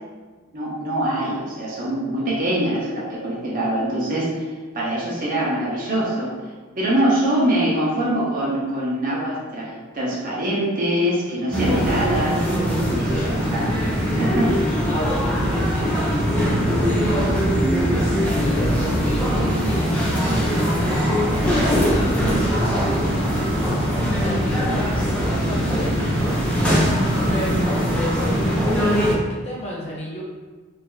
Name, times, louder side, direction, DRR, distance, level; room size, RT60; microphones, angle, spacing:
voice 1, 0.5-4.3 4.7-6.3 6.8-12.4 13.0-13.9 14.2-14.5, right 1 dB, 40° right, -6 dB, 0.9 m, -23 dB
sound 1, 11.5-29.2, equal, 5° left, 0.6 m, -21 dB
voice 2, 14.9-17.3 17.9-21.2 21.5-23.1 24.1-25.9 26.5-27.7 27.9-28.5 28.7-30.2, equal, 30° left, -6 dB, 0.9 m, -33 dB
4.7 x 2.9 x 2.2 m, 1.4 s
head